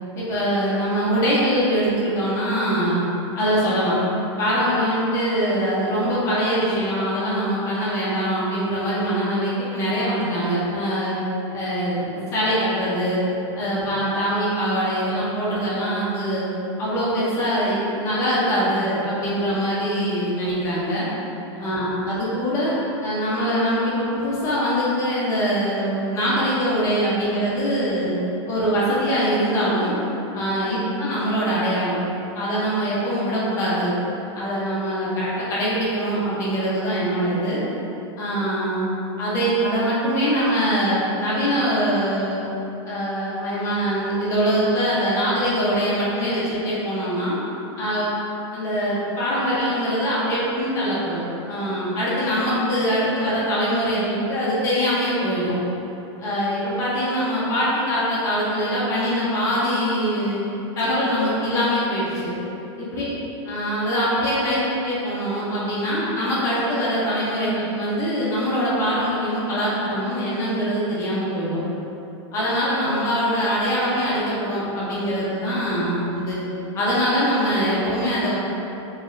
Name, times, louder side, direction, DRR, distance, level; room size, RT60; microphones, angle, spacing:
voice 1, 0.1-3.0 3.4-3.9 4.4-11.2 11.5-13.2 13.5-16.5 16.8-21.1 21.6-22.7 23.0-28.2 28.5-29.9 30.3-32.0 32.3-33.9 34.3-37.6 38.2-38.9 39.2-42.5 42.9-47.4 47.8-48.0 48.5-51.2 51.5-55.6 56.2-60.4 60.8-62.3 62.8-63.1 63.5-71.6 72.3-76.4 76.7-78.3, equal, 20° left, -8 dB, 0.8 m, -23 dB
3.4 x 3.1 x 3.7 m, 3.0 s
supercardioid pair, 170°, 16 cm